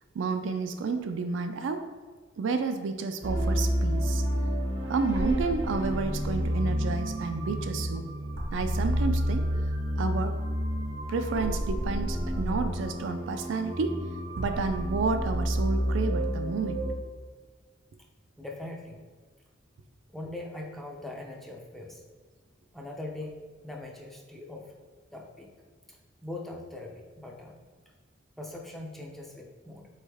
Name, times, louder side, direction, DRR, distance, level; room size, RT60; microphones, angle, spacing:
voice 1, 0.1-1.9 2.4-4.2 4.9-8.0 8.5-9.4 10.0-10.4 11.1-14.0 14.4-16.8, right 4 dB, 65° right, 7 dB, 0.3 m, -30 dB
sound 1, 3.2-16.9, equal, 85° right, 0.9 m, -29 dB
voice 2, 18.4-19.0 20.1-22.0 22.7-23.4 23.6-24.7 25.1-25.5 25.9-26.0 26.2-27.6 28.4-29.9, left 2 dB, ahead, 0 dB, 0.4 m, -41 dB
4.1 x 3.2 x 3.5 m, 1.5 s
head